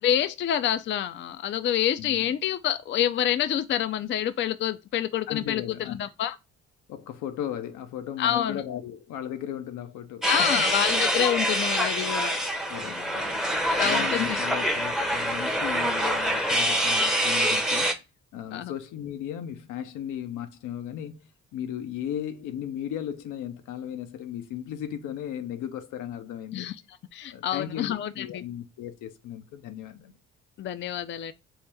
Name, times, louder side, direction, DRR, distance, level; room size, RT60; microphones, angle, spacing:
voice 1, 0.0-6.4 8.2-8.6 10.3-12.3 12.8-13.1 13.7-14.4 18.5-18.7 26.5-26.7 27.1-28.4 30.6-31.3, left 10 dB, 40° left, 0.4 m, -27 dB
voice 2, 5.3-6.0 6.9-10.7 12.7-13.4 13.8-18.0 18.3-26.7 27.3-30.1, left 10 dB, 85° left, 0.7 m, -36 dB
sound 1, 10.2-17.9, equal, ahead, 0.7 m, -25 dB
4.6 x 2.1 x 3.3 m
cardioid pair, 90°, 30 cm